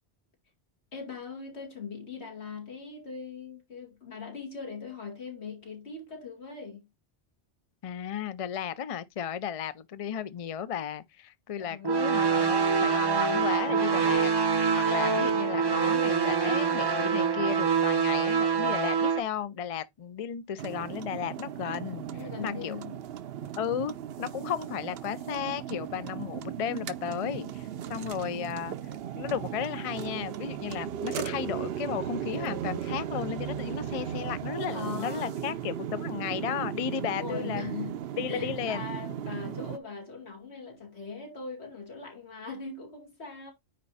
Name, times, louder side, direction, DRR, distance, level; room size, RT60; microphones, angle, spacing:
voice 1, 0.9-6.9 11.6-11.9 22.1-23.0 27.1-27.5 27.8-28.0 28.3-28.4 34.7-35.4 36.3-36.6 37.1-38.0 38.3-43.5, left 5 dB, 75° left, 2.5 m, -40 dB
voice 2, 7.8-14.3 14.8-22.1 22.4-22.8 23.6-23.9 24.2-27.5 27.9-28.8 29.2-37.7 38.2-38.8, left 8 dB, 45° left, 0.5 m, -34 dB
sound 1, 11.8-19.2, right 6 dB, 25° right, 0.6 m, -25 dB
inside VW transporter driving, 20.6-39.8, right 10 dB, 65° right, 0.8 m, -36 dB
9.5 x 3.2 x 4.1 m
omnidirectional pair, 1.1 m